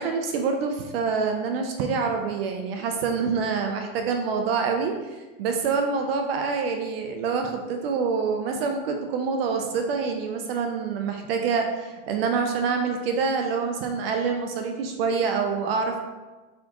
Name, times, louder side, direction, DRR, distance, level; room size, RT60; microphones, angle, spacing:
voice 1, 0.0-16.0, right 5 dB, 50° right, 4 dB, 0.4 m, -26 dB
4.2 x 3.5 x 2.9 m, 1.2 s
supercardioid pair, 165°, 39 cm